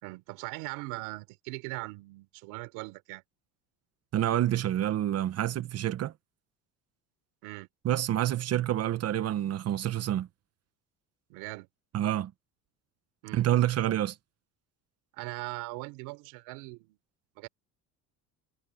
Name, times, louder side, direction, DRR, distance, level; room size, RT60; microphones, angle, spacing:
voice 1, 0.0-3.2 7.4-7.7 11.3-11.7 13.2-13.5 15.1-17.0 17.4-17.5, right 25 dB, 90° right, 4.2 m, -40 dB
voice 2, 4.1-6.1 7.8-10.3 11.9-12.3 13.3-14.1, right 12 dB, 45° right, 1.0 m, -28 dB
cardioid pair, 125°, 36 cm